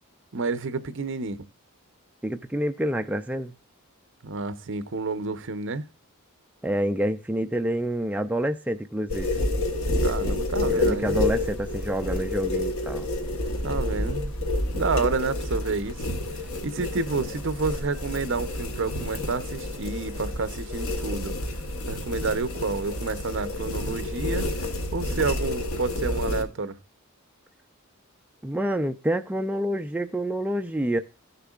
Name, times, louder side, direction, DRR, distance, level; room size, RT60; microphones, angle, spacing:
voice 1, 0.3-1.4 4.2-5.8 10.0-11.2 13.6-14.3 14.7-16.2 16.6-21.3 21.9-24.4 24.9-26.8, right 4 dB, 60° right, 0.8 m, -29 dB
voice 2, 2.2-3.5 6.6-9.4 10.7-13.1 28.4-31.0, right 1 dB, 5° right, 0.3 m, -27 dB
sound 1, 9.1-26.4, left 1 dB, 75° left, 1.3 m, -29 dB
15.5 x 6.8 x 2.4 m
head